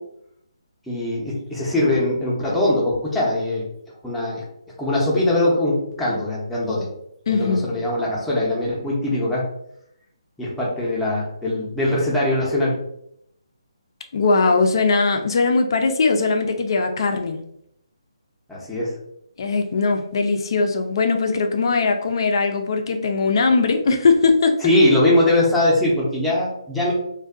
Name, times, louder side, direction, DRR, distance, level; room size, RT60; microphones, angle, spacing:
voice 1, 0.9-3.7 4.0-4.4 4.8-6.9 7.3-9.5 10.4-12.8 18.5-18.9 24.6-26.9, left 1 dB, 5° left, -7 dB, 0.6 m, -21 dB
voice 2, 7.3-7.7 14.1-17.4 19.4-24.6, left 4 dB, 50° left, 5 dB, 0.4 m, -20 dB
2.5 x 2.2 x 2.3 m, 0.75 s
figure-of-eight pair, 150°, 3 cm